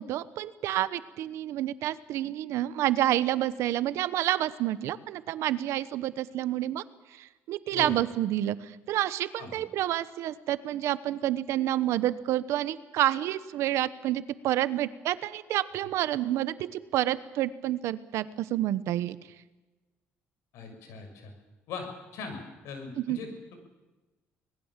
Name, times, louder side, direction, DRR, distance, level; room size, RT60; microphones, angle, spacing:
voice 1, 0.0-6.8 7.2-19.2 23.1-23.2, right 13 dB, 75° right, 15 dB, 1.0 m, -29 dB
voice 2, 20.5-21.3 21.7-22.4 22.6-23.5, left 4 dB, 80° left, 5 dB, 6.3 m, -40 dB
25.0 x 20.0 x 7.4 m, 1.2 s
cardioid pair, 130°, 5 cm